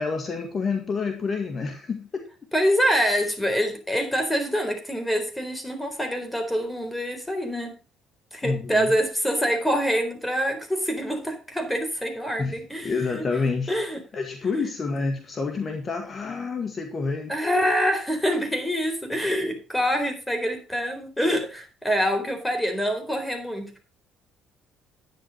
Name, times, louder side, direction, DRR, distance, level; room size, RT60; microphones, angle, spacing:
voice 1, 0.0-2.3 8.4-8.9 12.4-12.6 12.8-13.8 14.1-17.3, left 4 dB, 35° left, 5 dB, 1.9 m, -28 dB
voice 2, 2.5-7.8 8.3-13.2 13.7-14.0 17.3-23.9, equal, 5° left, 5 dB, 4.1 m, -25 dB
11.5 x 9.6 x 4.2 m, 0.33 s
cardioid pair, 105°, 0 cm